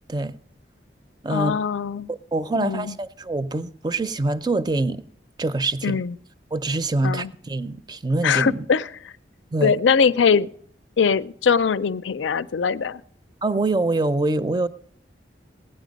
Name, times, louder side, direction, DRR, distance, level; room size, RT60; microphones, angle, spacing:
voice 1, 1.3-2.1 2.6-2.9 5.8-6.1 7.0-7.3 8.2-8.9 9.6-10.5 11.0-13.0, left 6 dB, 85° left, 0.4 m, -21 dB
voice 2, 2.1-5.0 5.4-6.0 6.5-8.7 9.5-9.8 13.4-14.7, right 2 dB, 20° right, 0.5 m, -25 dB
16.0 x 10.0 x 5.2 m
head